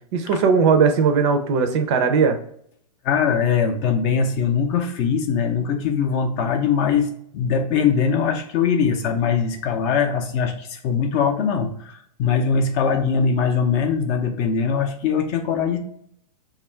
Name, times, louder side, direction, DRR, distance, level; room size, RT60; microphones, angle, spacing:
voice 1, 0.1-2.4, right 5 dB, 45° right, 7 dB, 0.5 m, -18 dB
voice 2, 3.0-15.8, left 6 dB, 30° left, 4 dB, 0.5 m, -21 dB
3.0 x 2.4 x 4.2 m, 0.67 s
hypercardioid pair, 140°, 21 cm